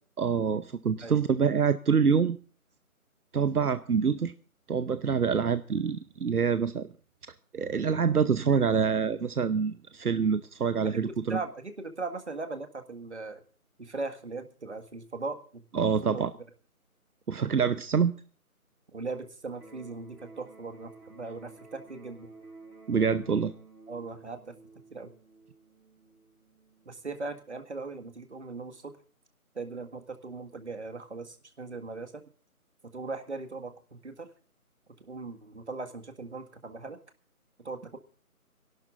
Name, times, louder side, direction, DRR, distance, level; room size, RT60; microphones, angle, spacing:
voice 1, 0.2-2.4 3.3-4.3 4.7-6.9 7.5-11.4 15.7-16.3 17.3-18.1 22.9-23.5, right 6 dB, 80° right, 13 dB, 0.9 m, -26 dB
voice 2, 11.0-13.4 13.8-15.6 15.9-16.2 18.9-22.3 23.9-24.5 24.9-25.1 26.9-28.9 29.6-32.2 32.9-34.3 35.0-37.0 37.6-38.0, right 3 dB, 50° right, 7 dB, 1.9 m, -39 dB
Electric guitar, 19.6-27.5, right 3 dB, 5° left, 2.8 m, -53 dB
29.0 x 12.0 x 2.5 m, 0.38 s
figure-of-eight pair, 175°, 44 cm